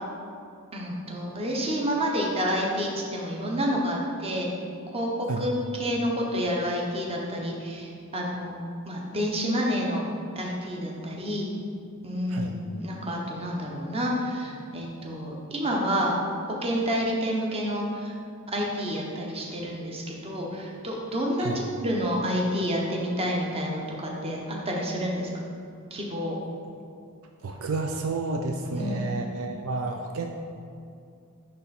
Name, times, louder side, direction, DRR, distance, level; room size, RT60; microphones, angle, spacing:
voice 1, 0.7-4.5 4.9-8.5 8.9-11.5 12.0-16.2 16.6-18.1 18.5-25.3 25.9-26.4 28.7-29.1, equal, 25° right, -2 dB, 1.0 m, -29 dB
voice 2, 27.4-30.3, right 3 dB, 65° right, 3 dB, 0.4 m, -30 dB
10.0 x 3.4 x 4.2 m, 2.4 s
head